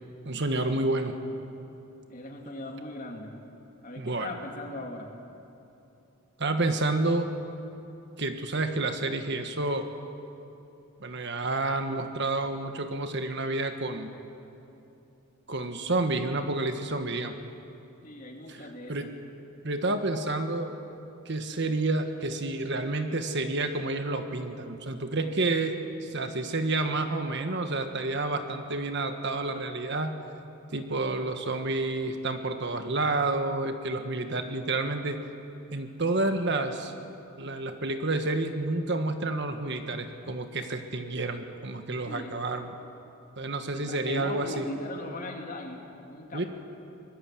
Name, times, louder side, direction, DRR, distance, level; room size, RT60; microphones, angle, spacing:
voice 1, 0.2-1.2 4.0-4.3 6.4-7.3 8.2-9.9 11.0-14.1 15.5-17.4 18.5-18.6 18.9-19.1 19.6-20.8 21.2-30.2 30.7-35.2 35.7-36.9 37.4-42.7 43.4-44.7 46.3-46.4, right 2 dB, 50° right, 7 dB, 1.4 m, -29 dB
voice 2, 2.1-3.3 3.8-5.1 18.0-19.1 42.1-42.4 43.7-46.5, left 1 dB, 35° left, 2 dB, 2.6 m, -39 dB
25.0 x 20.5 x 7.7 m, 2.8 s
head